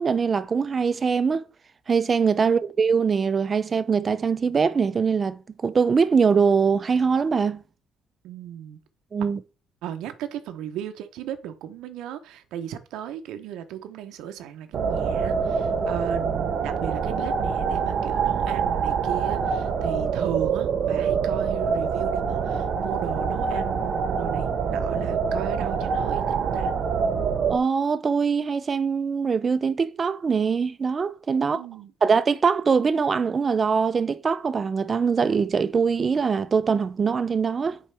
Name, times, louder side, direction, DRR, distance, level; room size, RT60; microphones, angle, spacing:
voice 1, 0.0-1.5 1.9-7.6 9.1-9.4 27.5-31.6 32.0-37.8, right 5 dB, 30° right, 0.4 m, -22 dB
voice 2, 8.2-8.8 9.8-26.7 31.4-31.9, right 10 dB, 85° right, 0.7 m, -36 dB
sound 1, 14.7-27.6, right 6 dB, 55° right, 0.8 m, -25 dB
7.4 x 4.6 x 3.3 m
cardioid pair, 125°, 0 cm